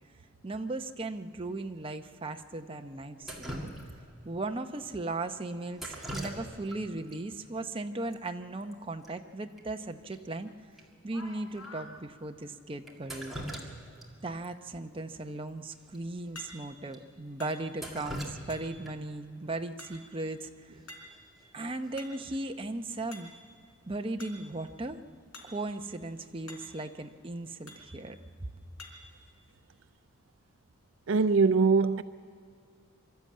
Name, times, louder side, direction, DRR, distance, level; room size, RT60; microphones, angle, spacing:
voice 1, 0.4-3.7 4.2-10.5 11.0-13.3 14.2-20.5 21.5-23.3 23.9-25.0 25.4-28.5, right 2 dB, 25° right, 0.7 m, -37 dB
Drip, 3.2-4.2 5.7-6.8 7.1-7.2 8.1-8.2 8.5-8.7 9.0-9.1 9.6-9.7 10.1-10.2 10.8-10.9 11.6-11.7 12.9-14.1 14.4-14.5 15.9-16.0 16.4-16.5 16.9-17.0 17.5-19.1 21.1-21.4 21.8-22.2, right 1 dB, ahead, 2.1 m, -41 dB
sound 1, 10.5-10.6 11.0-11.9 16.4-16.9 17.4-17.9 18.5-18.9 19.8-20.3 20.9-21.3 21.7-22.4 23.1-23.5 24.2-24.5 25.3-25.6 25.9-26.0 26.5-26.9 27.7-28.0 28.8-29.2, left 2 dB, 80° left, 3.8 m, -49 dB
voice 2, 31.1-32.0, right 4 dB, 60° right, 0.5 m, -22 dB
24.5 x 13.0 x 8.5 m
head